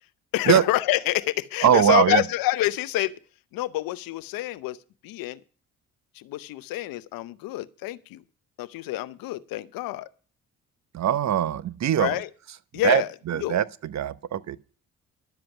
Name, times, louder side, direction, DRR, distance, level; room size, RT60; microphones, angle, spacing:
voice 1, 0.3-3.2 3.5-4.8 5.0-5.4 6.1-8.2 8.6-10.1 12.0-12.3 12.7-13.1 13.4-13.6, left 16 dB, 75° left, 0.7 m, -27 dB
voice 2, 1.6-2.2 10.9-12.2 12.8-14.6, right 10 dB, 50° right, 0.8 m, -22 dB
11.5 x 7.6 x 5.9 m
supercardioid pair, 55°, 35 cm